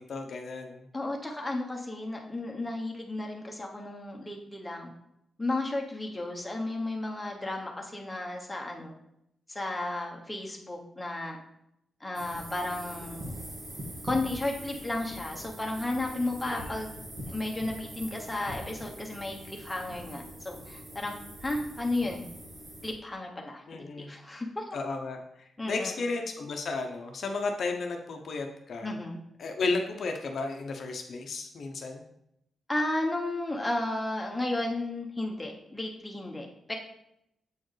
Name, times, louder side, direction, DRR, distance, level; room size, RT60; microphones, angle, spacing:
voice 1, 0.0-0.8 16.4-16.8 23.7-24.1 24.7-28.9 29.4-32.0, left 3 dB, 55° left, 4 dB, 0.5 m, -33 dB
voice 2, 0.9-4.9 5.4-8.9 9.5-11.4 12.0-13.3 14.0-16.9 17.3-21.1 21.4-22.2 22.8-23.6 23.9-24.7 25.6-25.9 28.8-29.2 32.7-36.7, left 2 dB, 10° left, 0 dB, 0.7 m, -33 dB
sound 1, 12.1-22.9, equal, 55° right, 1.4 m, -43 dB
7.0 x 4.3 x 3.1 m, 0.79 s
wide cardioid pair, 165°, 0 cm